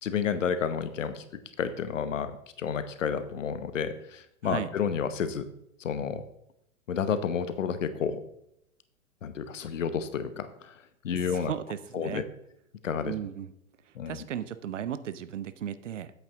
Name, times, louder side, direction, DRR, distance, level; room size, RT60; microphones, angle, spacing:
voice 1, 0.0-1.2 1.6-2.3 2.6-5.4 5.8-6.2 6.9-8.2 9.2-10.7 11.0-11.5 11.9-12.2 12.8-13.1 13.9-14.2, left 7 dB, 65° left, 11 dB, 1.0 m, -30 dB
voice 2, 11.2-12.3 13.0-13.5 13.8-16.1, right 9 dB, 60° right, 14 dB, 0.7 m, -36 dB
8.6 x 8.1 x 3.7 m, 0.77 s
figure-of-eight pair, 110°, 41 cm